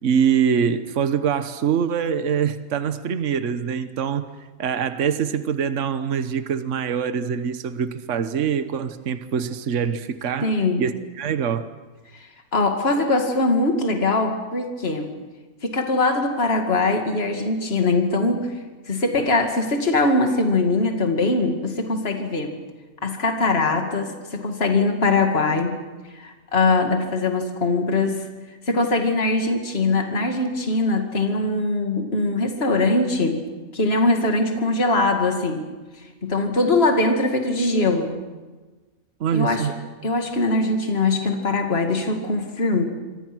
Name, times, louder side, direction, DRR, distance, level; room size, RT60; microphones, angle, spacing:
voice 1, 0.0-4.3 4.6-11.7 39.2-39.7, right 7 dB, 60° right, 1.4 m, -24 dB
voice 2, 10.4-10.8 12.1-12.3 12.5-15.1 15.6-18.5 18.9-22.6 23.0-25.8 26.1-28.3 28.7-33.4 33.7-35.6 36.2-38.1 39.3-39.7 40.0-42.8, left 2 dB, 45° left, 2.6 m, -22 dB
27.5 x 25.0 x 6.2 m
omnidirectional pair, 1.5 m